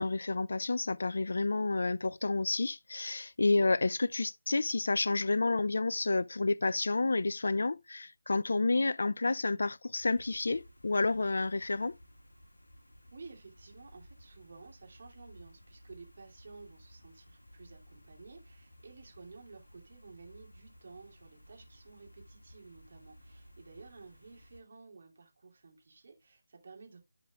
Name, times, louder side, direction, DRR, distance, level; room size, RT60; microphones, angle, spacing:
voice 1, 0.0-12.0, left 3 dB, 55° left, 0.4 m, -30 dB
sound 1, 10.0-24.6, equal, 75° left, 1.8 m, -57 dB
voice 2, 13.1-27.0, right 4 dB, 45° right, 2.7 m, -53 dB
13.5 x 5.0 x 2.3 m
figure-of-eight pair, 155°, 0 cm